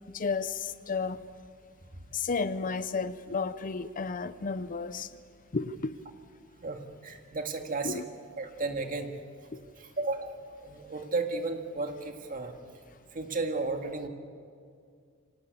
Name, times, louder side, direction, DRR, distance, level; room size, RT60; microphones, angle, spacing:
voice 1, 0.1-1.2 2.1-5.1 5.5-6.0 7.8-8.0 9.5-9.6, left 4 dB, 40° left, 14 dB, 0.6 m, -32 dB
voice 2, 6.6-8.0 8.4-9.1 9.8-10.4 10.6-12.6 13.1-14.1, right 3 dB, 40° right, 5 dB, 1.9 m, -33 dB
25.5 x 18.0 x 8.4 m, 2.2 s
head